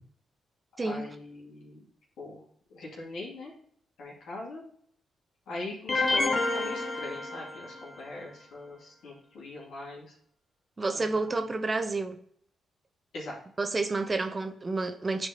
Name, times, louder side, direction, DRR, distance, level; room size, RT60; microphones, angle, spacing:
voice 1, 0.8-1.9 2.2-2.4 2.7-3.5 4.0-4.6 5.5-10.1 10.9-11.4 13.1-13.4, left 2 dB, 70° left, 2.4 m, -41 dB
sound 1, 5.9-8.0, left 2 dB, 45° left, 1.0 m, -29 dB
voice 2, 10.8-12.2 13.6-15.3, right 3 dB, 35° right, 0.8 m, -30 dB
9.6 x 4.5 x 2.9 m
hypercardioid pair, 40°, 0 cm